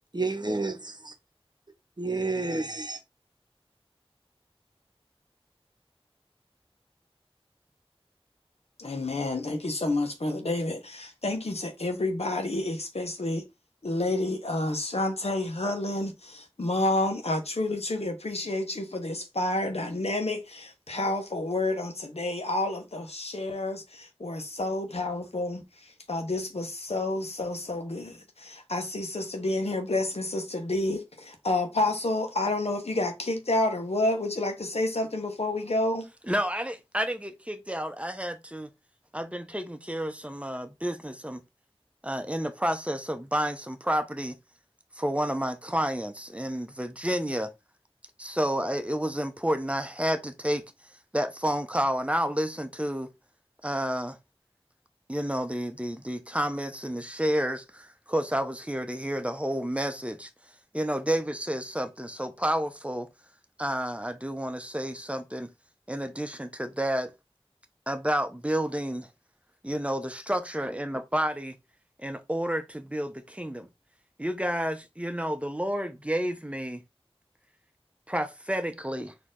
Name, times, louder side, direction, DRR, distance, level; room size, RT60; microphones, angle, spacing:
voice 1, 0.1-1.1 2.0-3.0, right 3 dB, 45° right, 0.9 m, -30 dB
voice 2, 8.8-13.4 13.8-36.1, left 2 dB, 85° left, 1.0 m, -29 dB
voice 3, 36.3-38.7 39.1-41.4 42.0-44.4 44.9-47.5 48.2-50.6 51.1-53.1 53.6-54.2 55.1-60.3 60.7-63.1 63.6-65.5 65.9-67.1 67.9-69.1 69.6-71.6 72.0-73.7 74.2-76.8 78.1-79.1, equal, 10° right, 0.8 m, -30 dB
4.3 x 2.9 x 3.8 m
wide cardioid pair, 45°, 10 cm